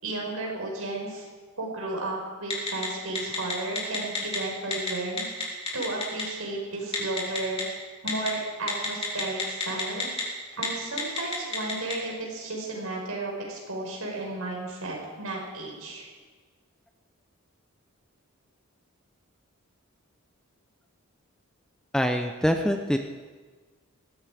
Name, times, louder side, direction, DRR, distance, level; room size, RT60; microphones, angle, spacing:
voice 1, 0.0-1.3 1.6-7.6 8.0-10.1 10.6-16.0, right 2 dB, 90° right, -1 dB, 5.5 m, -33 dB
Telephone, 2.5-2.9 3.1-4.4 4.7-4.9 5.2-6.2 6.9-7.6 8.1-8.3 8.7-10.2 10.5-10.7 11.0-11.9, left 4 dB, 30° left, 3.9 m, -28 dB
voice 2, 21.9-23.0, equal, 5° left, 5 dB, 0.6 m, -24 dB
19.5 x 15.0 x 4.9 m, 1.4 s
head